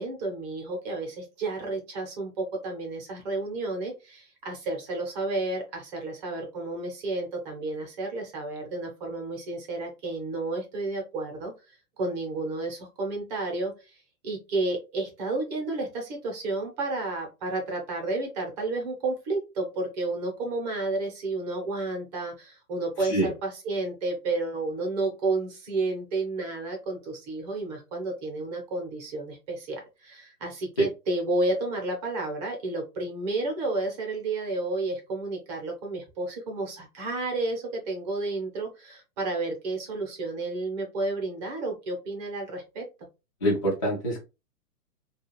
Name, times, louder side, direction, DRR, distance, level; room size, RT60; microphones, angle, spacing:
voice 1, 0.0-11.5 12.0-42.8, right 2 dB, 25° right, 1 dB, 0.7 m, -31 dB
voice 2, 23.0-23.3 30.8-30.9 43.4-44.2, right 1 dB, 25° left, -5 dB, 0.3 m, -25 dB
2.4 x 2.4 x 2.9 m, 0.27 s
hypercardioid pair, 145°, 46 cm